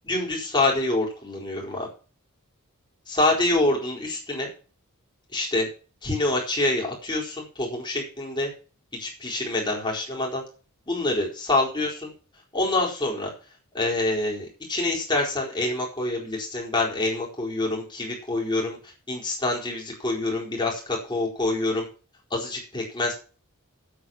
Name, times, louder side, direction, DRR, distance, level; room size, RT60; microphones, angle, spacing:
voice 1, 0.0-1.9 3.1-4.5 5.3-5.7 6.0-8.5 9.0-10.4 10.9-12.1 12.5-13.3 13.7-18.8 19.1-21.9 22.3-23.1, left 2 dB, 20° left, -3 dB, 4.4 m, -26 dB
8.6 x 8.5 x 7.3 m, 0.36 s
head